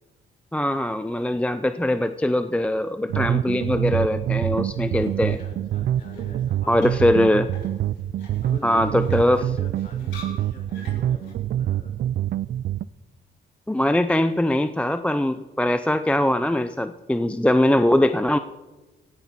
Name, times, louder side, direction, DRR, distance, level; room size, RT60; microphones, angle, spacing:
voice 1, 0.5-5.4 6.7-7.5 8.6-9.4 13.7-18.4, left 1 dB, 5° left, 11 dB, 0.5 m, -21 dB
sound 1, 3.1-12.8, right 11 dB, 55° right, 0.4 m, -26 dB
sound 2, 4.7-11.3, left 2 dB, 70° left, 6.8 m, -48 dB
voice 2, 5.1-7.6 8.4-11.9, left 2 dB, 40° left, 1 dB, 5.1 m, -44 dB
17.5 x 14.5 x 4.2 m, 1.1 s
cardioid pair, 90°, 20 cm